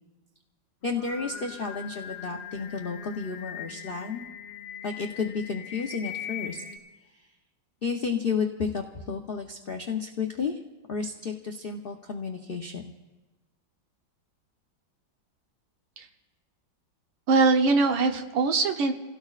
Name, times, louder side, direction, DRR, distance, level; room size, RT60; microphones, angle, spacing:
voice 1, 0.8-4.2 4.8-6.6 7.8-10.6 10.9-12.8, left 5 dB, 65° left, 2 dB, 0.5 m, -32 dB
Singing, 0.8-6.8, left 9 dB, 40° left, 1.5 m, -41 dB
voice 2, 17.3-18.9, right 3 dB, 75° right, 5 dB, 1.8 m, -22 dB
29.5 x 17.0 x 2.4 m, 1.2 s
omnidirectional pair, 2.2 m